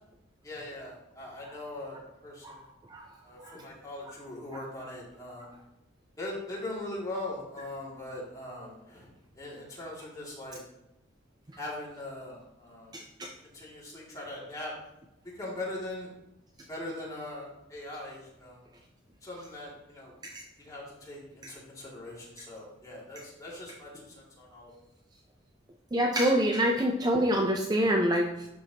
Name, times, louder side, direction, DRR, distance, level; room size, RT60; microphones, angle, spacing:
voice 1, 0.4-2.6 3.2-5.5 6.2-9.1 9.4-10.6 11.6-12.9 13.5-14.7 15.4-16.1 16.7-18.6 19.2-20.1 20.6-24.7, left 1 dB, 20° left, -5 dB, 2.4 m, -41 dB
voice 2, 12.9-13.3 20.2-20.4 21.4-21.5 25.9-28.5, equal, 20° right, 1 dB, 0.5 m, -26 dB
11.5 x 4.6 x 2.9 m, 0.91 s
head